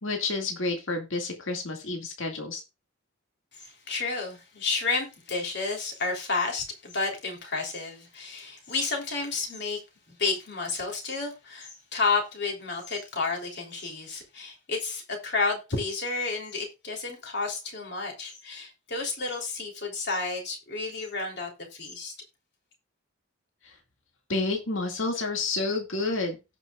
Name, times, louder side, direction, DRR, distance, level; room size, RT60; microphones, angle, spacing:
voice 1, 0.0-2.6 23.6-23.8 24.3-26.4, left 3 dB, 70° left, 2.2 m, -29 dB
voice 2, 3.5-9.8 10.1-22.1, left 3 dB, 50° left, 3.4 m, -31 dB
17.5 x 6.2 x 2.4 m
head